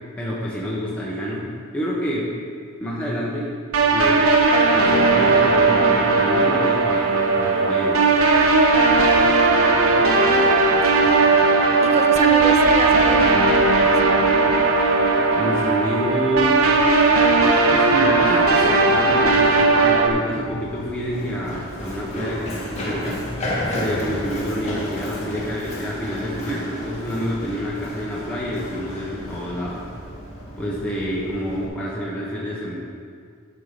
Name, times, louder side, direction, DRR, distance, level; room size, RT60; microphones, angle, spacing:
voice 1, 0.2-1.5 1.7-2.3 2.8-3.5 3.9-4.2 4.7-8.0 15.3-16.8 17.7-23.3 23.7-29.8 30.6-32.7, equal, 5° left, -7 dB, 1.3 m, -27 dB
sound 1, 3.7-20.1, right 3 dB, 90° right, 1.0 m, -17 dB
voice 2, 9.9-11.0 11.8-14.2, right 4 dB, 30° right, 10 dB, 0.4 m, -29 dB
Run, 20.1-31.7, equal, 30° left, 2.2 m, -32 dB
11.5 x 5.7 x 5.3 m, 2.1 s
head